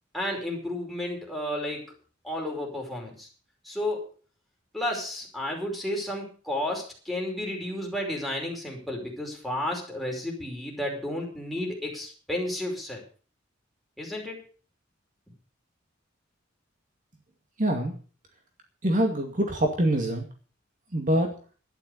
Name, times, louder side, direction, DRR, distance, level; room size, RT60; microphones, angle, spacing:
voice 1, 0.1-1.9 2.2-3.3 3.6-4.1 4.7-13.0 14.0-14.4, left 1 dB, ahead, -1 dB, 5.1 m, -32 dB
voice 2, 17.6-17.9 18.8-20.3 20.9-21.3, right 1 dB, 45° right, 3 dB, 2.3 m, -24 dB
12.5 x 10.5 x 6.7 m, 0.39 s
head